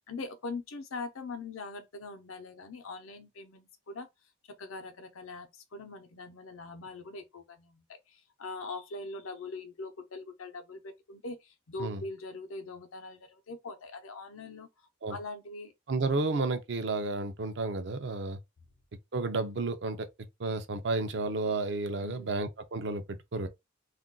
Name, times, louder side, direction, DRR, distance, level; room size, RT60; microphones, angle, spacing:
voice 1, 0.1-4.1 4.6-14.7 15.1-15.7 22.0-22.4, left 3 dB, 85° left, 0.6 m, -42 dB
voice 2, 15.9-18.4 19.1-20.1 20.4-23.5, right 3 dB, 60° right, 0.5 m, -32 dB
2.4 x 2.2 x 3.7 m
head